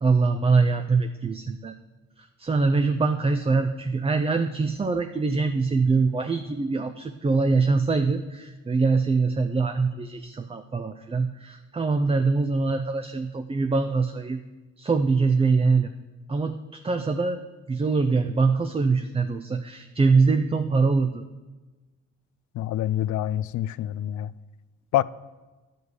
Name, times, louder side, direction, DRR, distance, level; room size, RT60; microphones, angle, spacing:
voice 1, 0.0-1.7 2.2-14.4 14.8-15.9 16.3-17.4 17.7-21.3, right 4 dB, 20° right, 0.5 m, -23 dB
voice 2, 22.5-24.3 24.9-25.0, left 12 dB, 70° left, 0.4 m, -26 dB
11.0 x 5.3 x 8.0 m
cardioid pair, 90°, 30 cm